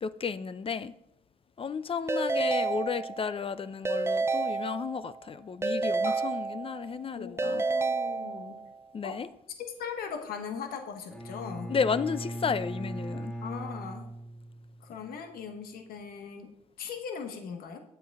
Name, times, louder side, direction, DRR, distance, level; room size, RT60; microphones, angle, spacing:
voice 1, 0.0-0.9 1.6-7.6 8.9-9.3 11.7-13.3, left 5 dB, 35° left, 0.6 m, -33 dB
Keyboard (musical) / Ringtone, 2.1-3.4 3.8-5.2 5.6-7.0 7.4-8.7, right 3 dB, 15° right, 0.3 m, -30 dB
voice 2, 7.1-8.6 9.0-9.2 9.6-11.7 13.4-14.1 14.8-17.8, left 6 dB, 85° left, 1.3 m, -39 dB
Bowed string instrument, 11.1-14.9, right 1 dB, 5° left, 1.8 m, -39 dB
9.4 x 7.9 x 4.7 m
cardioid pair, 80°, 15 cm